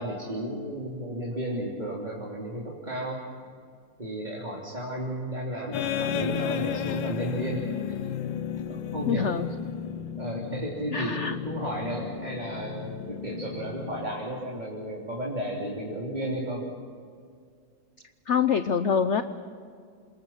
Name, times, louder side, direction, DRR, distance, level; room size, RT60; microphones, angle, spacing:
voice 1, 0.0-3.2 4.0-7.6 8.7-9.3 10.2-16.7, right 1 dB, 20° right, -4 dB, 3.4 m, -33 dB
sound 1, 5.7-14.6, left 8 dB, 80° left, 1.6 m, -34 dB
voice 2, 9.1-9.5 10.9-11.4 18.3-19.2, left 7 dB, 55° left, 10 dB, 0.8 m, -25 dB
28.0 x 27.0 x 5.8 m, 2.2 s
omnidirectional pair, 2.1 m